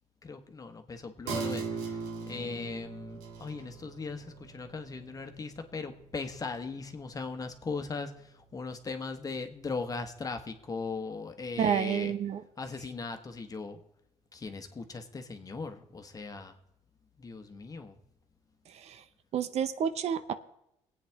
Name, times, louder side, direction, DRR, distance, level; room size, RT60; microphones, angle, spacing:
voice 1, 0.2-2.0 2.3-8.1 8.5-12.1 12.6-13.8 14.3-16.5 17.2-18.0, left 4 dB, 30° left, 6 dB, 1.3 m, -38 dB
sound 1, 1.3-8.3 8.7-8.8, right 4 dB, 90° right, 2.0 m, -40 dB
voice 2, 11.6-12.4 19.3-20.3, right 8 dB, 60° right, 12 dB, 0.7 m, -29 dB
21.0 x 8.6 x 3.5 m, 0.80 s
cardioid pair, 95°, 13 cm